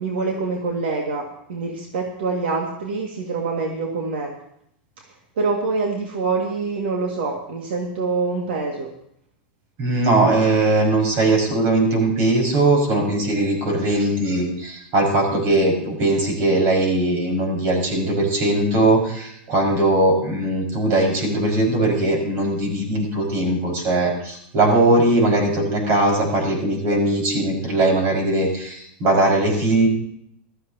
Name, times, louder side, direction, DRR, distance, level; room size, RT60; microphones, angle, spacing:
voice 1, 0.0-4.3 5.4-8.9, right 4 dB, 85° right, 0 dB, 2.1 m, -25 dB
voice 2, 9.8-29.9, right 2 dB, 45° right, 0 dB, 5.4 m, -20 dB
16.0 x 13.5 x 2.9 m, 0.71 s
supercardioid pair, 140°, 6 cm